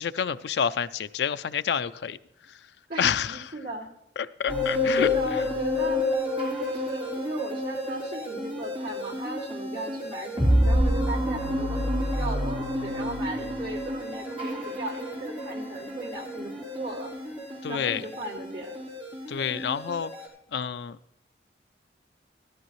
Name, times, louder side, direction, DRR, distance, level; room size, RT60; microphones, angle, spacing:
voice 1, 0.0-2.2 3.0-3.4 4.2-5.1 17.6-18.0 19.3-20.1 20.5-21.0, left 7 dB, 70° left, 13 dB, 0.4 m, -28 dB
voice 2, 2.9-3.9 4.9-6.1 6.6-17.1 17.7-18.8, right 2 dB, 60° right, -3 dB, 2.7 m, -37 dB
sound 1, 4.5-20.3, left 1 dB, 30° right, 3.3 m, -29 dB
13.5 x 13.0 x 3.1 m, 0.79 s
head